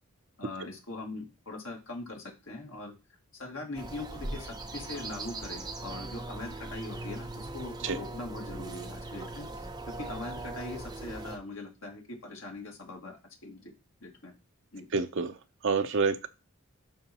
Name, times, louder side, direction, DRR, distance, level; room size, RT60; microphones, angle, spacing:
voice 1, 0.4-2.9 3.4-9.5 10.0-13.7 14.0-14.3 14.7-14.9, left 2 dB, 65° left, 1 dB, 2.0 m, -41 dB
sound 1, 3.8-11.4, right 2 dB, 20° right, 0.7 m, -40 dB
voice 2, 14.9-15.4 15.6-16.3, right 4 dB, 55° right, 8 dB, 0.6 m, -27 dB
11.0 x 3.9 x 2.9 m, 0.29 s
head